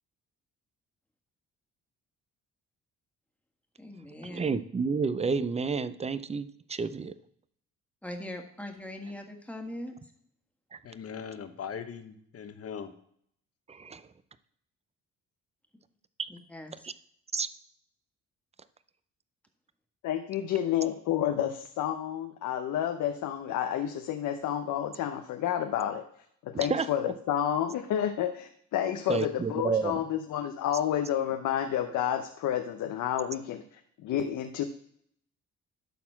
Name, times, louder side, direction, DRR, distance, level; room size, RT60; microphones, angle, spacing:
voice 1, 3.8-4.4 8.0-9.9 16.3-16.9, left 1 dB, 5° left, 3 dB, 1.7 m, -41 dB
voice 2, 4.3-7.1 10.7-10.8 13.7-14.0 16.8-16.9 17.3-17.5 26.5-26.9 29.1-30.0, right 5 dB, 20° right, 14 dB, 0.5 m, -30 dB
voice 3, 10.8-12.9, left 7 dB, 50° left, 9 dB, 1.1 m, -40 dB
voice 4, 20.0-26.0 26.4-33.6 34.0-34.6, left 10 dB, 75° left, 6 dB, 0.8 m, -30 dB
12.0 x 4.3 x 5.7 m, 0.67 s
cardioid pair, 90°, 30 cm